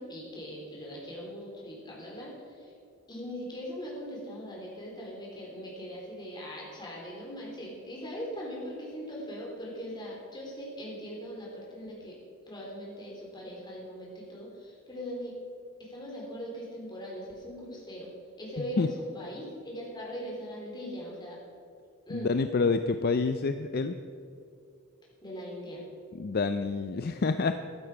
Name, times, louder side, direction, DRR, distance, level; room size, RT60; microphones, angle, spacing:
voice 1, 0.0-2.7 3.1-12.2 12.5-15.3 15.8-18.1 18.4-21.4 22.1-22.3 25.2-25.8, equal, 20° left, -3 dB, 3.7 m, -40 dB
voice 2, 22.1-24.0 26.2-27.5, left 4 dB, 45° left, 9 dB, 0.4 m, -27 dB
14.5 x 11.5 x 5.0 m, 2.4 s
head